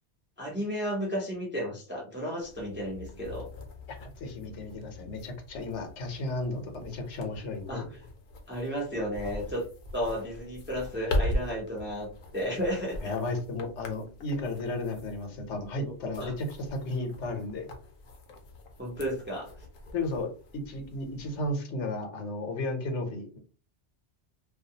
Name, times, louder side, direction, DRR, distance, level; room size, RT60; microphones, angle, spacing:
voice 1, 0.4-3.5 7.7-7.8 8.5-9.7 9.9-13.0 15.8-16.3 18.8-19.5, equal, 15° right, -2 dB, 0.4 m, -33 dB
sound 1, 2.4-21.5, left 1 dB, 60° left, 0.7 m, -40 dB
voice 2, 3.9-7.9 13.0-17.7 19.9-23.4, left 2 dB, 85° left, 4 dB, 1.0 m, -34 dB
2.4 x 2.2 x 2.7 m, 0.38 s
omnidirectional pair, 1.2 m